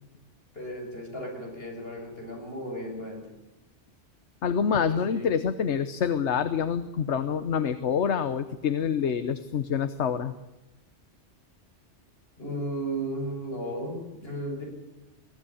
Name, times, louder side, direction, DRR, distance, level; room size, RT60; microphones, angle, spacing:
voice 1, 0.5-3.3 4.9-5.4 12.4-14.7, right 1 dB, 55° left, 1 dB, 7.2 m, -35 dB
voice 2, 4.4-10.3, left 7 dB, 75° left, 11 dB, 1.2 m, -26 dB
23.5 x 16.0 x 9.9 m, 1.0 s
omnidirectional pair, 1.2 m